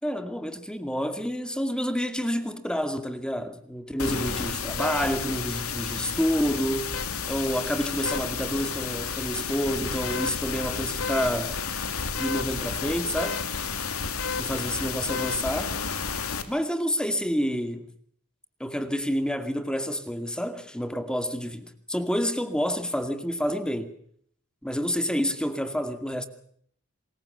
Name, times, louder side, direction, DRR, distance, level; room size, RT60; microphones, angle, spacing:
voice 1, 0.0-7.0 7.3-11.6 12.2-13.4 14.4-15.8 16.5-17.9 18.6-23.9 24.6-26.3, equal, 5° left, 2.3 m, -28 dB
sound 1, 4.0-16.4, left 5 dB, 70° left, 3.2 m, -31 dB
26.5 x 21.5 x 6.9 m
head